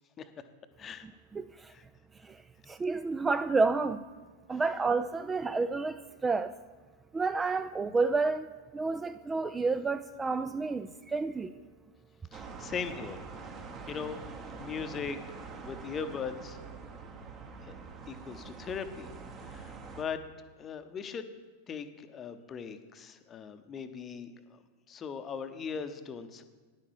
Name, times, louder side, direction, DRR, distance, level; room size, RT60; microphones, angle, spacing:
voice 1, 1.3-1.7 2.2-2.4 2.7-4.0 4.5-6.5 7.1-8.5 8.7-11.5, right 4 dB, 15° right, 0.3 m, -30 dB
voice 2, 12.3-13.2 13.9-14.2 14.6-15.2 15.6-16.6 17.6-17.8 18.1-19.1 19.4-20.2 20.6-21.3 21.7-24.6 24.9-26.4, left 6 dB, 25° left, 0.8 m, -39 dB
sound 1, 12.3-20.0, right 4 dB, 30° right, 1.1 m, -45 dB
10.5 x 8.7 x 4.8 m
figure-of-eight pair, 90°, 0 cm